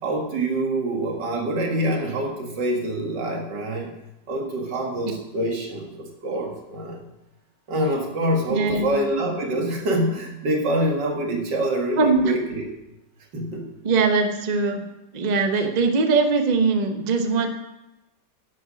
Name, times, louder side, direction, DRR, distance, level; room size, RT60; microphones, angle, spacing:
voice 1, 0.0-3.9 4.3-7.0 7.7-12.7 13.3-13.7, right 1 dB, 75° right, 1 dB, 2.5 m, -25 dB
voice 2, 8.5-9.0 12.0-12.3 13.8-14.8 15.1-17.5, right 4 dB, 30° right, 5 dB, 0.9 m, -21 dB
10.5 x 7.6 x 6.2 m, 0.96 s
omnidirectional pair, 1.9 m